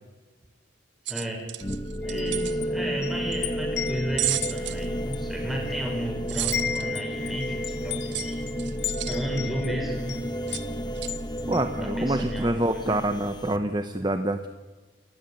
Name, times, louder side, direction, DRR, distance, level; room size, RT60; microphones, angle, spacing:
voice 1, 1.1-1.4 2.0-8.4 9.1-10.2 11.8-13.0, equal, ahead, 0 dB, 5.8 m, -34 dB
sound 1, 1.1-2.6 4.2-4.9 6.3-6.8 8.1-9.2 10.5-10.6 11.0-11.1, right 15 dB, 65° right, 0.8 m, -31 dB
sound 2, 1.6-13.6, equal, 20° left, 1.2 m, -32 dB
Wind chime, 2.0-6.1 6.4-12.3, left 10 dB, 60° left, 2.0 m, -36 dB
voice 2, 11.5-14.5, right 1 dB, 20° right, 8 dB, 0.9 m, -26 dB
29.0 x 13.5 x 9.3 m, 1.3 s
head